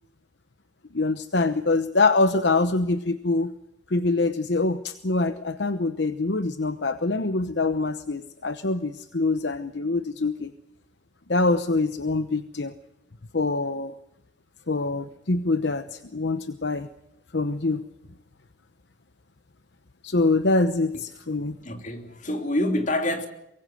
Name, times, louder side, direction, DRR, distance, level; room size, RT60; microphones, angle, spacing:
voice 1, 0.9-3.5 3.9-10.5 11.3-12.7 13.3-13.9 14.7-16.9 17.3-17.8 20.0-21.6, left 3 dB, 65° left, 0.9 m, -24 dB
voice 2, 21.4-23.3, left 1 dB, 40° left, 3.1 m, -27 dB
24.0 x 23.5 x 6.5 m
head